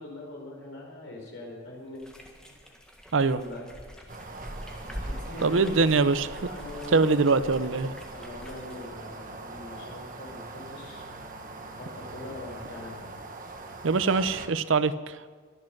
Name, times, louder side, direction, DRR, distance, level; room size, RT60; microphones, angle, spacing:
voice 1, 0.0-2.0 2.5-2.6 3.2-3.7 5.0-6.0 6.5-11.0 11.8-13.1, left 2 dB, 75° left, -1 dB, 4.7 m, -42 dB
sound 1, 2.0-8.9, equal, 5° left, 1.6 m, -43 dB
sound 2, 4.1-14.5, right 3 dB, 40° right, 1.2 m, -42 dB
voice 2, 5.4-6.4 6.9-7.9 13.8-14.9, right 4 dB, 75° right, 14 dB, 0.6 m, -23 dB
23.0 x 7.8 x 6.0 m, 1.5 s
head